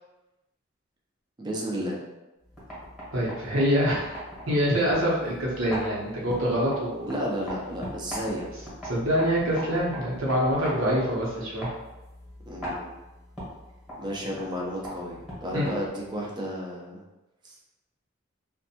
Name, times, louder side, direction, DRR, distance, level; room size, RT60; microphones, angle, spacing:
voice 1, 1.4-2.0 7.0-8.5 12.5-13.0 14.0-17.0 17.4-17.6, equal, 20° right, -2 dB, 0.4 m, -32 dB
sound 1, 2.4-16.2, equal, ahead, 0.9 m, -40 dB
voice 2, 3.1-4.1 4.5-7.1 8.8-11.7 15.5-15.6, equal, 85° right, -5 dB, 0.8 m, -25 dB
2.6 x 2.2 x 2.7 m, 1.0 s
head